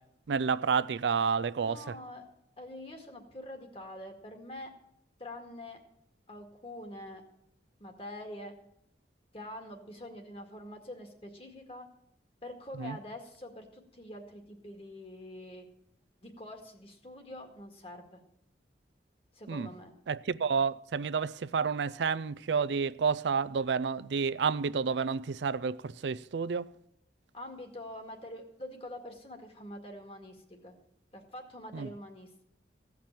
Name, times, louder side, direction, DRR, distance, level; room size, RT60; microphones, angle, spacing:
voice 1, 0.3-1.9 12.8-13.0 19.5-19.7 20.1-26.7 31.7-31.9, right 5 dB, 80° right, 0.4 m, -30 dB
voice 2, 1.6-2.2 2.6-4.7 5.2-5.8 6.3-7.2 7.8-8.5 9.3-11.9 12.4-15.7 16.2-18.2 19.3-19.9 27.3-30.7 31.1-32.4, left 1 dB, 35° left, 2.0 m, -45 dB
16.0 x 5.9 x 8.9 m
head